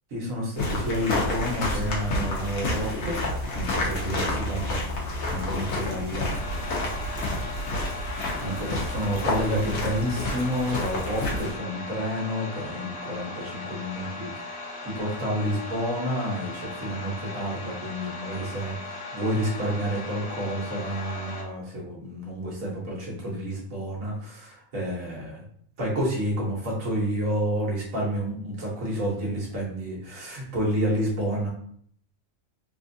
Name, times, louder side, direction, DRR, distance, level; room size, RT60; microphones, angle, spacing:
voice 1, 0.1-3.2 3.5-4.8 5.3-6.2 8.4-25.4 25.8-31.5, equal, 70° right, -3 dB, 1.4 m, -30 dB
sound 1, 0.6-11.5, left 1 dB, 80° left, 1.3 m, -29 dB
sound 2, 6.2-21.4, left 2 dB, 60° left, 0.8 m, -38 dB
3.6 x 2.5 x 2.6 m, 0.63 s
omnidirectional pair, 1.5 m